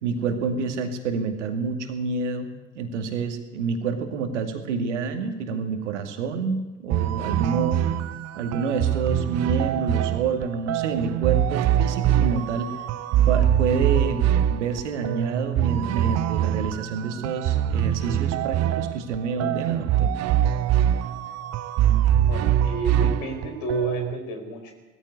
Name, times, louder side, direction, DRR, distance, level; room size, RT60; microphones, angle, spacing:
voice 1, 0.0-7.9 8.3-12.7 13.2-20.1, right 5 dB, 70° right, 6 dB, 2.4 m, -28 dB
sound 1, 6.9-24.2, right 11 dB, 45° right, 1.0 m, -23 dB
voice 2, 22.2-24.7, right 2 dB, 55° left, 7 dB, 4.9 m, -31 dB
20.0 x 14.5 x 9.6 m, 1.2 s
figure-of-eight pair, 60°, 37 cm